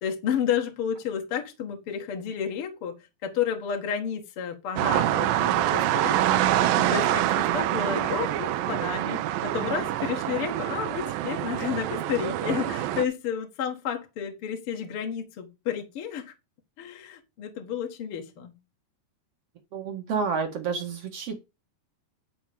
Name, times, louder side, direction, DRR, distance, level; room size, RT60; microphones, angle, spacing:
voice 1, 0.0-2.9 3.2-6.4 6.8-16.3 16.8-18.5, left 8 dB, 55° left, 1.6 m, -31 dB
sound 1, 4.8-13.0, right 13 dB, 85° right, 2.0 m, -26 dB
voice 2, 19.7-21.4, right 5 dB, 65° right, 1.5 m, -29 dB
11.0 x 4.4 x 6.8 m
omnidirectional pair, 5.0 m